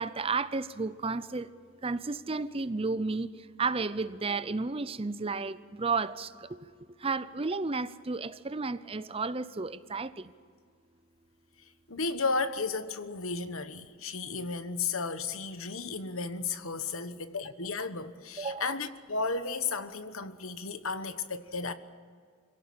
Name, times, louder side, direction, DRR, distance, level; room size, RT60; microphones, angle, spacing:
voice 1, 0.0-1.5 1.8-3.3 3.6-6.6 7.0-10.3 18.4-18.7, right 4 dB, 25° right, 0.6 m, -32 dB
voice 2, 11.9-21.7, left 4 dB, 75° left, 1.2 m, -34 dB
25.5 x 17.0 x 8.7 m
head